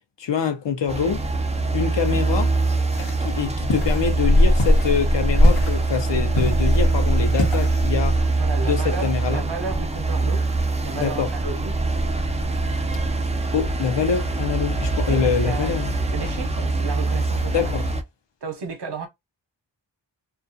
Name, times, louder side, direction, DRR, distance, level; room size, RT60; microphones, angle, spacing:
voice 1, 0.2-1.2 1.7-2.5 3.2-8.2 8.6-9.4 10.9-11.3 13.5-15.9 17.5-17.8, left 6 dB, 65° left, 0.7 m, -25 dB
sound 1, 0.9-18.0, right 1 dB, 15° right, 0.3 m, -22 dB
sound 2, 2.9-7.9, left 2 dB, 85° left, 1.0 m, -31 dB
voice 2, 8.4-12.0 15.1-17.7 18.4-19.1, right 4 dB, 60° right, 0.8 m, -34 dB
2.4 x 2.3 x 2.5 m
wide cardioid pair, 100°, 47 cm